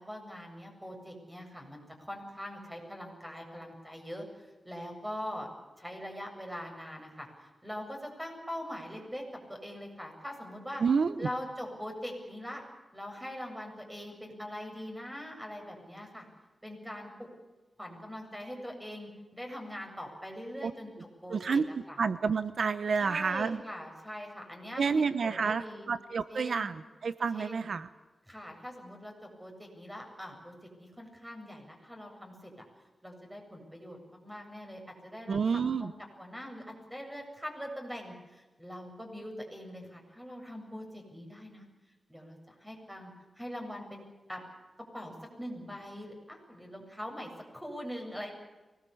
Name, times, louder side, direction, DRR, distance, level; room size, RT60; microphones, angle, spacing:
voice 1, 0.0-1.8 2.1-5.5 5.8-10.8 11.2-12.6 12.9-16.3 16.6-17.3 17.8-20.9 21.2-21.6 21.9-22.0 23.0-25.9 26.3-26.8 27.3-27.7 28.3-32.7 33.0-35.9 36.2-41.7 42.1-44.4 44.9-48.3, equal, 5° right, 2 dB, 7.7 m, -42 dB
voice 2, 10.8-11.3 20.6-20.7 21.3-23.6 24.8-27.9 35.3-35.9, right 5 dB, 70° right, 13 dB, 0.8 m, -29 dB
24.0 x 19.5 x 8.6 m, 1.2 s
wide cardioid pair, 95°, 0 cm